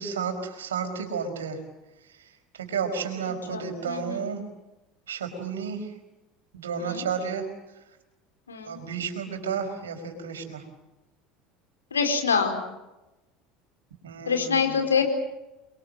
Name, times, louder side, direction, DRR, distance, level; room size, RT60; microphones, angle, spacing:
voice 1, 0.0-1.6 2.1-4.4 5.1-5.9 6.5-7.5 8.6-10.6 14.0-14.9, right 6 dB, 75° right, 6 dB, 4.9 m, -32 dB
voice 2, 3.5-4.2 6.8-7.0 8.5-8.8 11.9-12.5 14.3-15.0, left 6 dB, 80° left, 5 dB, 4.5 m, -25 dB
30.0 x 23.0 x 7.8 m, 1.0 s
figure-of-eight pair, 70°, 0 cm